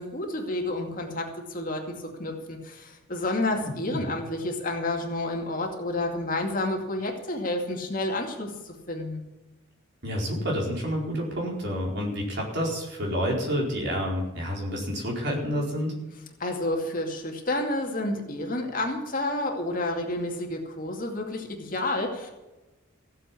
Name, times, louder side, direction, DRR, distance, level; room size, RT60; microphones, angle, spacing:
voice 1, 0.0-9.2 16.4-22.3, left 2 dB, 40° left, 1 dB, 2.4 m, -30 dB
voice 2, 3.6-4.0 10.0-15.9, equal, 55° right, -1 dB, 4.6 m, -29 dB
16.0 x 7.7 x 8.5 m, 1.0 s
head